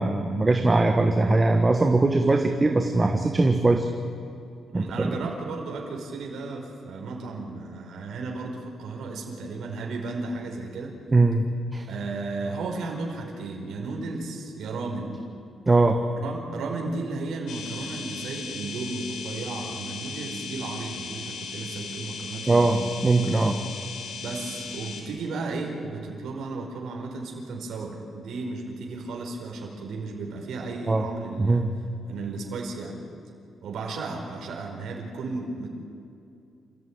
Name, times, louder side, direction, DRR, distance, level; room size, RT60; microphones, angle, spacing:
voice 1, 0.0-3.9 4.7-5.2 11.1-11.4 11.7-11.8 15.7-16.0 22.5-22.8 23.0-23.6 30.9-31.0 31.4-31.7, right 2 dB, 20° right, 5 dB, 1.4 m, -21 dB
voice 2, 4.7-10.9 11.9-15.2 16.2-22.9 24.2-31.6 32.0-33.0 33.6-35.7, right 3 dB, 75° right, 0 dB, 4.9 m, -34 dB
sound 1, 17.5-25.0, left 5 dB, 85° left, 4.3 m, -37 dB
28.5 x 15.0 x 9.6 m, 2.6 s
cardioid pair, 140°, 0 cm